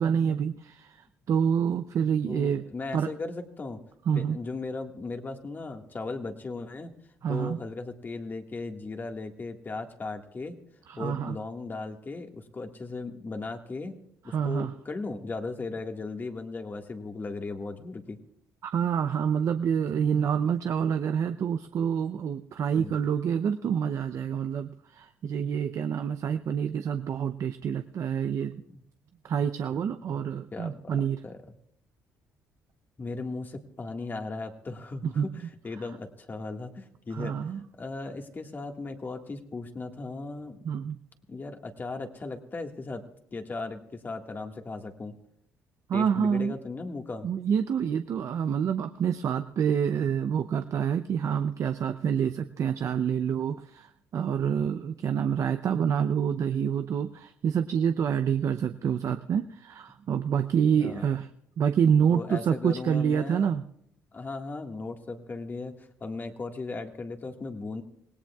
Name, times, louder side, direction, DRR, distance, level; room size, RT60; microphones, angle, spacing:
voice 1, 0.0-2.6 2.9-3.1 4.1-4.4 7.2-7.6 10.9-11.3 14.3-14.7 18.6-28.6 29.2-31.2 35.0-35.3 37.1-37.6 40.6-41.0 45.9-46.6 47.2-61.3 61.6-63.6, right 7 dB, 55° right, 8 dB, 0.6 m, -27 dB
voice 2, 2.1-3.8 4.1-6.9 7.3-10.5 11.0-14.0 14.2-18.2 22.7-23.0 28.7-28.8 30.0-30.1 30.5-31.4 33.0-37.3 37.8-40.8 41.3-43.0 43.3-45.2 45.9-47.3 60.8-61.1 62.1-63.5 64.1-67.8, left 3 dB, 30° left, 4 dB, 1.7 m, -37 dB
25.5 x 17.5 x 2.4 m, 0.73 s
cardioid pair, 80°, 6 cm